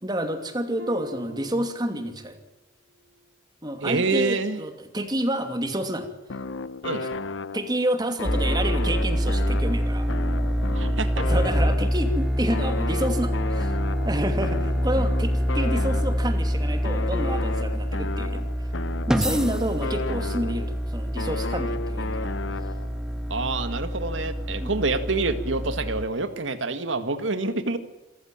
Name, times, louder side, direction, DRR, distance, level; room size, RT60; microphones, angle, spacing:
voice 1, 0.0-2.4 3.6-6.1 7.0-7.1 7.5-10.1 11.1-13.7 14.0-18.5 19.1-22.3 24.6-24.7, right 1 dB, 20° right, 7 dB, 2.7 m, -29 dB
Harp, 0.8-2.5 2.9-3.3 3.9-4.0, equal, 60° right, 2.0 m, -43 dB
voice 2, 3.8-4.6 6.8-7.0 10.7-11.1 23.3-27.8, right 3 dB, 85° right, 9 dB, 1.9 m, -27 dB
sound 1, 6.3-7.8 8.2-12.1 12.5-16.4 16.8-20.8 21.2-23.0, left 3 dB, 80° left, 0.9 m, -34 dB
sound 2, 8.2-26.0, equal, 5° right, 1.5 m, -26 dB
28.0 x 15.0 x 8.9 m, 1.0 s
head